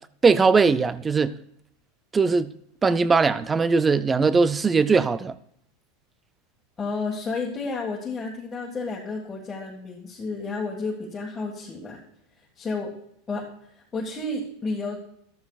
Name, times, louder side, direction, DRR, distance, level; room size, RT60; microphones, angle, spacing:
voice 1, 0.2-1.4 2.1-2.5 2.8-5.3, right 4 dB, 15° right, 0.5 m, -20 dB
voice 2, 6.8-12.0 12.6-12.9 13.3-13.5 13.9-15.0, left 3 dB, 15° left, 1.8 m, -31 dB
13.0 x 13.0 x 2.4 m
supercardioid pair, 145°, 0 cm